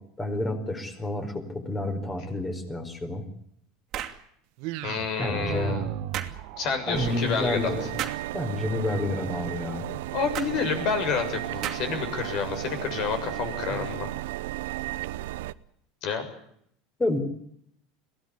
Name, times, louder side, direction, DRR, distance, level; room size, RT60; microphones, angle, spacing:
voice 1, 0.2-3.2 5.2-5.8 6.9-7.9 8.3-9.9 13.8-13.9 17.0-17.2, left 2 dB, 15° left, 8 dB, 4.7 m, -29 dB
sound 1, 3.9-4.2 6.1-6.4 8.0-8.3 10.3-10.5 11.6-12.0, right 11 dB, 40° right, 2.5 m, -33 dB
sound 2, 4.6-12.8, right 13 dB, 65° right, 1.4 m, -40 dB
voice 2, 4.8-5.9 6.6-7.7 10.1-14.1 16.0-16.2, left 6 dB, 50° left, 8 dB, 7.0 m, -29 dB
sound 3, 6.9-15.5, right 16 dB, 85° right, 0.8 m, -34 dB
22.5 x 17.0 x 9.8 m, 0.71 s
supercardioid pair, 135°, 0 cm